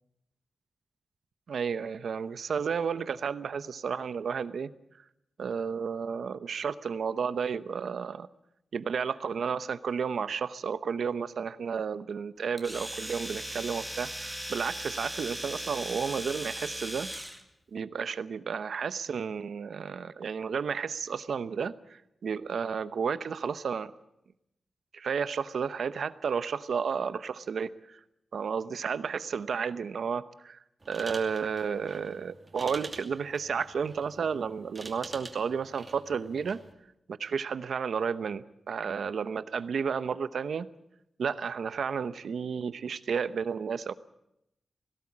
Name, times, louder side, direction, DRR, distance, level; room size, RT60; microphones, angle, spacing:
voice 1, 1.5-4.7 5.4-8.3 8.7-17.1 17.7-23.9 24.9-28.0 28.3-30.6 30.9-36.6 37.1-40.7 41.2-43.9, right 6 dB, 80° right, 14 dB, 0.8 m, -32 dB
Domestic sounds home sounds, 12.6-17.4, equal, ahead, 1.9 m, -38 dB
sound 1, 30.8-36.7, right 2 dB, 30° right, 2.7 m, -47 dB
18.5 x 16.5 x 8.6 m, 0.82 s
wide cardioid pair, 125°, 0 cm